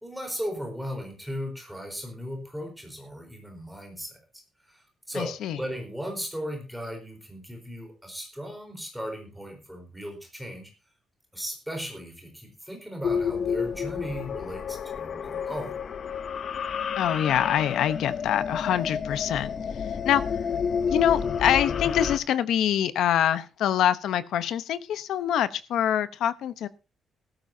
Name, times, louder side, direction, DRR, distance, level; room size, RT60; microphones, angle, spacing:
voice 1, 0.0-4.2 4.6-10.7 11.3-15.8, equal, 5° right, 4.2 m, -37 dB
voice 2, 5.1-5.6 17.0-19.6 20.0-20.2 20.9-26.7, left 10 dB, 75° left, 0.9 m, -25 dB
sound 1, 13.0-22.2, left 7 dB, 40° left, 0.7 m, -30 dB
17.0 x 14.0 x 2.8 m
cardioid pair, 180°, 0 cm